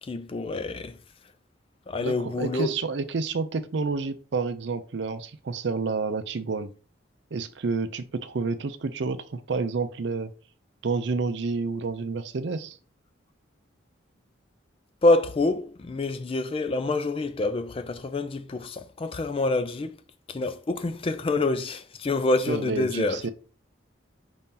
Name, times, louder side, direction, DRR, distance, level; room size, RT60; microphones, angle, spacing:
voice 1, 0.0-1.0 1.9-2.7 15.0-20.0 20.3-23.3, left 2 dB, 30° left, 0.3 m, -26 dB
voice 2, 2.0-6.7 7.3-10.3 10.8-12.8 22.5-23.3, right 4 dB, 65° right, 0.5 m, -29 dB
5.1 x 2.8 x 3.7 m
head